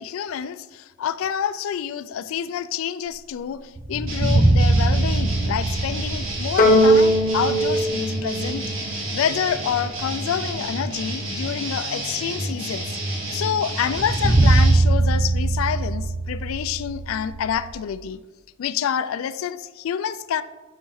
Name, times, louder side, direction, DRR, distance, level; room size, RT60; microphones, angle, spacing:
voice 1, 0.0-8.6 9.1-18.2 18.6-20.4, left 8 dB, 75° left, 14 dB, 0.3 m, -28 dB
sound 1, 3.8-8.4 8.7-8.8 13.8-17.7, right 2 dB, 25° right, 0.5 m, -21 dB
sound 2, 4.1-14.7, right 1 dB, 70° right, 1.7 m, -30 dB
sound 3, 6.6-9.2, equal, 40° left, 0.7 m, -19 dB
7.3 x 5.5 x 3.1 m, 1.2 s
head